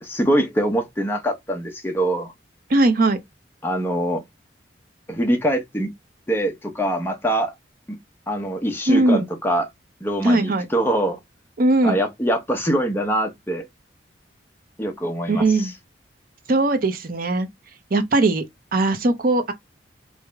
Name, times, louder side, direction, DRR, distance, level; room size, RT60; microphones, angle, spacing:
voice 1, 0.0-2.3 3.6-4.2 5.1-5.9 6.3-7.5 7.9-8.0 8.3-9.7 10.0-11.2 11.8-13.6 14.8-15.7, right 1 dB, 10° left, 0.8 m, -23 dB
voice 2, 2.7-3.2 8.9-9.2 10.2-10.6 11.6-12.0 15.3-15.7 16.5-17.5 17.9-18.4 18.7-19.5, right 2 dB, 50° right, 0.6 m, -19 dB
4.7 x 2.1 x 3.4 m
head